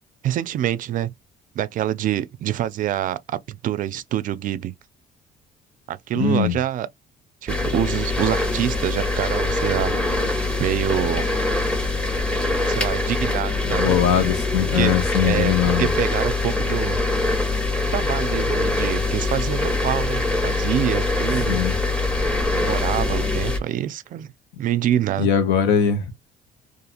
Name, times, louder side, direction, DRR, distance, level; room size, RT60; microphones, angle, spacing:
voice 1, 0.2-1.1 1.6-4.7 5.9-6.9 7.4-9.9 10.6-11.3 12.7-13.9 14.7-15.5 15.8-17.0 17.9-21.6 22.5-24.3 24.6-25.3, right 11 dB, 50° right, 0.4 m, -26 dB
voice 2, 6.1-6.6 13.6-15.9 21.5-21.7 25.2-26.1, left 8 dB, 90° left, 0.8 m, -21 dB
sound 1, 7.5-23.6, left 2 dB, 5° left, 0.7 m, -23 dB
2.8 x 2.4 x 2.4 m
cardioid pair, 110°, 17 cm